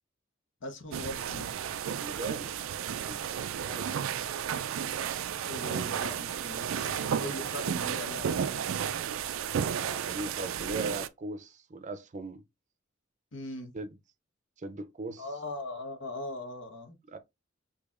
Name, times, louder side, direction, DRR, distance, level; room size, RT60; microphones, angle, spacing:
voice 1, 0.6-1.5 5.5-8.6 13.3-13.7 15.2-16.9, left 2 dB, 65° left, 1.0 m, -40 dB
sound 1, 0.9-11.1, right 8 dB, 85° right, 0.4 m, -33 dB
voice 2, 2.0-2.6 3.0-3.4 3.6-4.1 9.6-12.4 13.7-13.9 14.6-15.2 17.1-17.2, right 3 dB, 40° right, 0.5 m, -39 dB
6.5 x 2.8 x 2.4 m
head